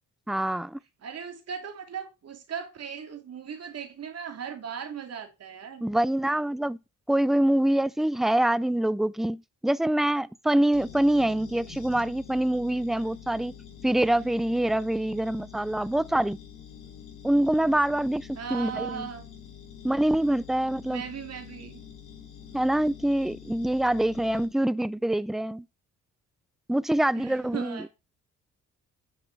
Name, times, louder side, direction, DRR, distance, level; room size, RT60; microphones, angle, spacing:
voice 1, 0.3-0.8 5.8-6.8 7.1-13.5 13.8-16.4 17.2-18.2 18.5-19.1 19.8-21.0 22.5-25.6 26.7-27.8, right 1 dB, ahead, 0.4 m, -25 dB
voice 2, 1.0-5.9 18.4-19.2 20.9-21.8 27.1-27.9, right 7 dB, 55° right, 2.6 m, -37 dB
sound 1, 10.7-24.5, left 8 dB, 80° left, 5.6 m, -46 dB
10.0 x 5.5 x 4.6 m
cardioid pair, 90°, 30 cm